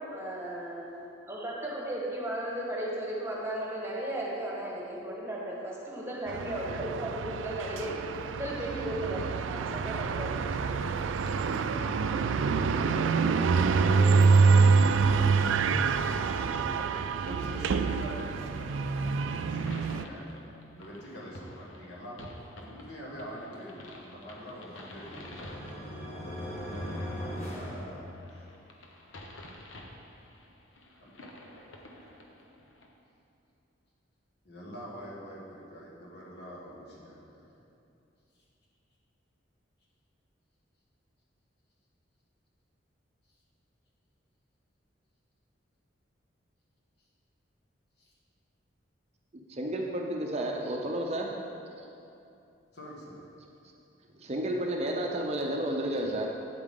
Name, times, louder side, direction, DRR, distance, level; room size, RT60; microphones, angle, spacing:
voice 1, 0.1-0.9 1.3-8.0 8.3-9.2 9.5-10.8, right 1 dB, 15° right, -5 dB, 1.4 m, -35 dB
sound 1, 6.3-20.0, right 4 dB, 75° right, 0.4 m, -26 dB
voice 2, 12.8-14.0 14.8-20.3 20.7-22.2 22.6-26.2 27.5-28.5 31.0-31.3 34.4-37.6 43.3-43.4 48.0-48.1 52.7-53.3, equal, 55° left, -5 dB, 1.8 m, -45 dB
sound 2, 16.7-32.9, left 1 dB, 90° left, 1.0 m, -50 dB
sound 3, 24.2-28.6, equal, 35° left, 1.4 m, -39 dB
voice 3, 49.3-51.3 54.2-56.3, right 1 dB, 35° right, 1 dB, 0.6 m, -31 dB
9.2 x 8.4 x 3.7 m, 2.6 s
head